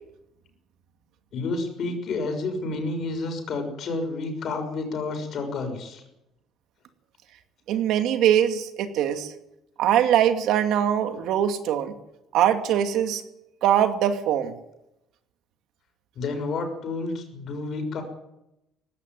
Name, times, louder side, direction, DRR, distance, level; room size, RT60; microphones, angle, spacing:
voice 1, 1.3-6.0 16.1-18.0, left 3 dB, 50° left, 5 dB, 6.4 m, -30 dB
voice 2, 7.7-9.3 9.8-11.9 12.3-13.2 13.6-14.5, right 10 dB, 75° right, 7 dB, 2.4 m, -22 dB
18.5 x 16.0 x 9.5 m, 0.88 s
cardioid pair, 125°, 0 cm